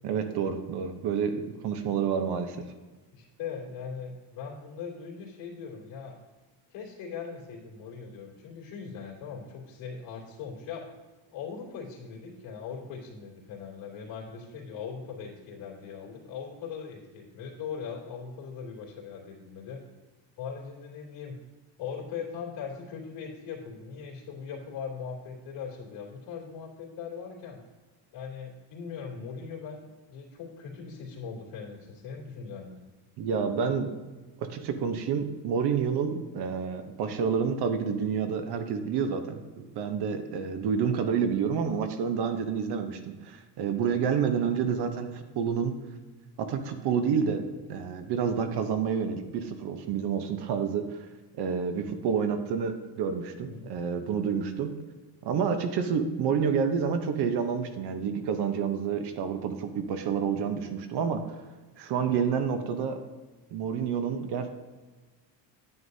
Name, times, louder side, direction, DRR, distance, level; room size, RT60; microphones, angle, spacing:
voice 1, 0.0-2.6 33.2-33.9 34.4-45.8 46.4-47.4 47.7-51.0 51.4-54.7 55.2-61.2 61.8-63.0 63.5-64.5, right 6 dB, 55° right, 8 dB, 0.9 m, -29 dB
voice 2, 3.1-6.2 6.7-10.9 11.3-19.8 20.4-21.4 21.8-27.6 28.1-32.8 53.4-53.7, left 6 dB, 65° left, -3 dB, 2.8 m, -40 dB
9.6 x 9.1 x 2.7 m, 1.3 s
cardioid pair, 145°, 48 cm